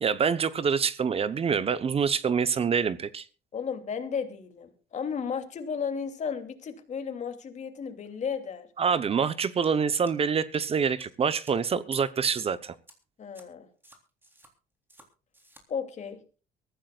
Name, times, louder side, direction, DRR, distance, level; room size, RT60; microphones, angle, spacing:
voice 1, 0.0-3.3 8.8-12.7, right 6 dB, 35° right, 0.9 m, -26 dB
voice 2, 3.5-8.7 13.2-13.7 15.7-16.2, left 6 dB, 45° left, 2.9 m, -34 dB
sound 1, 9.6-9.7 10.1-10.6 11.0-11.1 11.4-11.5 11.9-12.0 12.4-12.5 12.9-13.0 13.3-13.4 13.8-14.5 14.9-15.1 15.3-15.6, right 1 dB, 10° right, 3.6 m, -53 dB
23.5 x 15.0 x 2.4 m
cardioid pair, 110°, 17 cm